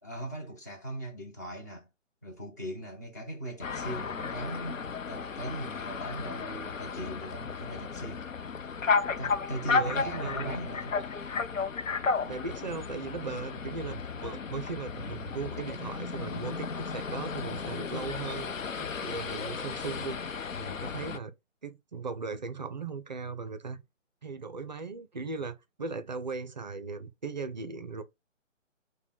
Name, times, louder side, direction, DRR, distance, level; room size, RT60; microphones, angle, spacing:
voice 1, 0.0-1.9 2.2-8.3 9.2-11.0, right 1 dB, 15° left, 0.5 m, -39 dB
sound 1, 3.6-21.2, left 5 dB, 85° left, 0.6 m, -34 dB
voice 2, 9.8-10.5 12.3-21.3 21.6-23.8 24.2-28.0, right 4 dB, 35° right, 0.5 m, -38 dB
5.0 x 2.2 x 4.4 m
figure-of-eight pair, 140°, 38 cm